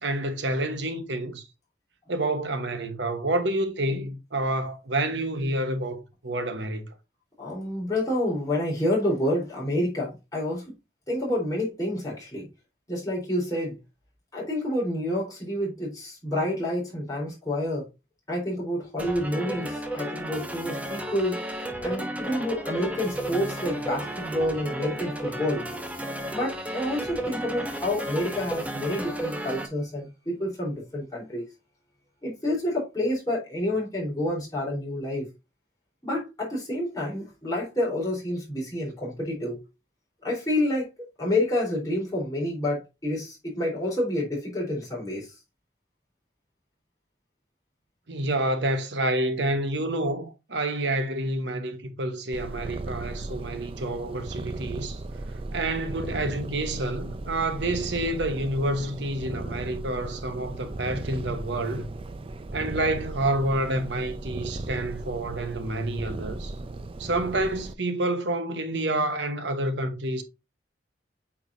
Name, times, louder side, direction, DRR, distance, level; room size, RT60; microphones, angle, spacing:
voice 1, 0.0-1.5 2.1-6.9 48.1-55.0 55.5-61.9 62.5-66.6 67.0-70.2, right 1 dB, 70° right, 1.1 m, -28 dB
voice 2, 7.4-10.6 11.1-12.5 12.9-13.8 14.3-17.8 18.3-21.4 21.8-31.5 32.2-35.3 36.0-39.6 40.2-45.3, left 1 dB, 20° left, 3.8 m, -29 dB
sound 1, 19.0-29.7, right 1 dB, 10° right, 0.8 m, -33 dB
Purr, 52.3-67.7, right 2 dB, 30° right, 0.4 m, -36 dB
8.4 x 4.7 x 2.6 m
head